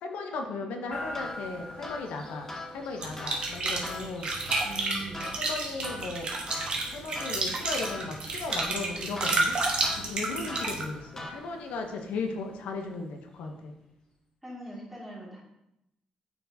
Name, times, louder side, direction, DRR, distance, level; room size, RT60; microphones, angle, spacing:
voice 1, 0.0-4.3 5.2-6.3 6.9-9.6 10.0-13.7, left 3 dB, 90° left, 3 dB, 0.8 m, -36 dB
sound 1, 0.9-13.9, equal, 40° left, 1.9 m, -48 dB
sound 2, 1.1-11.8, left 2 dB, 20° left, 0.8 m, -43 dB
sound 3, 3.0-10.8, right 3 dB, 45° right, 1.1 m, -31 dB
voice 2, 4.6-5.3 14.4-15.4, right 1 dB, 10° right, -5 dB, 2.2 m, -41 dB
8.4 x 4.5 x 2.7 m, 0.84 s
cardioid pair, 115°, 2 cm